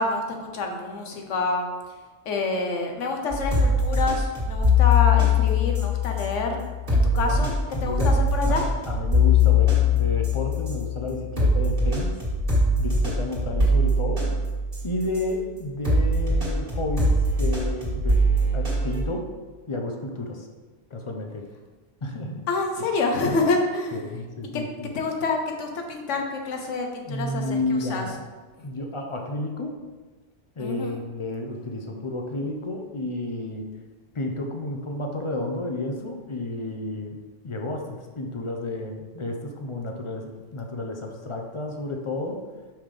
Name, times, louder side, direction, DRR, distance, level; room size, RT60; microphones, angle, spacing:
voice 1, 0.0-1.7 2.3-6.6 6.9-7.5 7.8-8.6 22.5-24.2 24.9-28.1 30.6-31.0, left 3 dB, 85° left, 3 dB, 1.2 m, -27 dB
sound 1, 3.3-15.3 15.8-19.0, left 3 dB, 45° right, 1.9 m, -22 dB
voice 2, 7.0-8.1 8.5-12.2 12.8-14.3 14.8-18.2 18.5-19.3 19.7-20.5 20.9-21.5 22.0-22.4 23.9-24.9 27.1-28.2 28.6-29.8 30.6-33.7 34.1-37.2 37.4-42.4, left 2 dB, 40° left, 3 dB, 0.4 m, -31 dB
5.7 x 5.2 x 3.3 m, 1.3 s
omnidirectional pair, 1.2 m